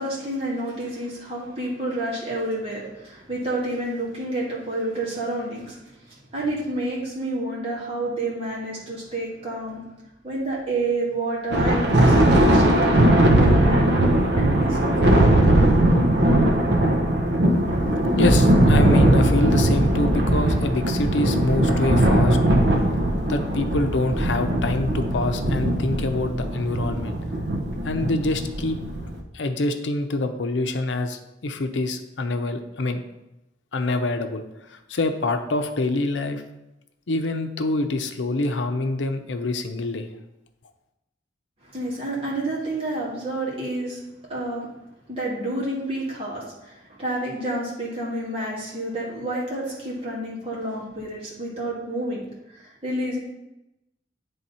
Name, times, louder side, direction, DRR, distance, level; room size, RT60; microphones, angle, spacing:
voice 1, 0.0-5.8 6.1-9.8 10.2-13.9 14.4-15.4 41.6-44.0 44.3-44.7 45.1-52.2 52.5-53.2, right 1 dB, 30° right, -6 dB, 2.1 m, -29 dB
Thunder, 11.5-29.2, right 1 dB, 70° right, 0.8 m, -19 dB
voice 2, 18.2-22.4 23.3-27.2 27.8-28.8 29.3-33.0 33.7-36.4 37.1-40.1, left 2 dB, 85° left, 7 dB, 0.6 m, -26 dB
9.0 x 3.5 x 4.2 m, 0.92 s
head